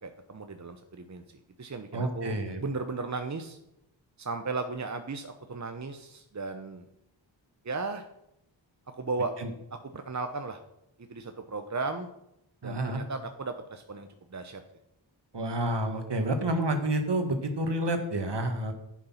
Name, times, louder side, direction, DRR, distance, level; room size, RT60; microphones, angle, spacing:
voice 1, 0.0-1.2 1.6-3.6 4.2-6.9 7.6-8.1 8.9-9.3 9.7-10.6 11.0-12.1 12.6-14.6, right 3 dB, 35° right, 7 dB, 1.0 m, -36 dB
voice 2, 1.9-2.6 9.4-9.5 12.6-13.0 15.3-18.7, right 1 dB, 60° right, 6 dB, 2.0 m, -29 dB
10.5 x 8.5 x 5.8 m, 0.84 s
cardioid pair, 45°, 47 cm